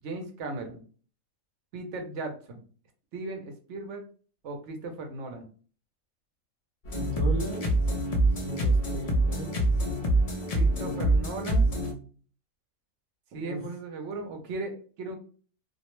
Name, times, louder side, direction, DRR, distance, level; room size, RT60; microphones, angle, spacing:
voice 1, 0.0-0.8 1.7-2.6 3.1-4.0 4.4-5.4 10.5-11.7 13.3-15.2, right 2 dB, 65° right, 4 dB, 0.9 m, -37 dB
sound 1, 6.9-11.9, right 2 dB, 75° left, 0.3 m, -25 dB
voice 2, 7.0-7.7 8.3-9.6 10.8-11.1 13.4-13.7, right 1 dB, 50° right, -4 dB, 0.3 m, -36 dB
2.5 x 2.0 x 3.0 m, 0.40 s
omnidirectional pair, 1.4 m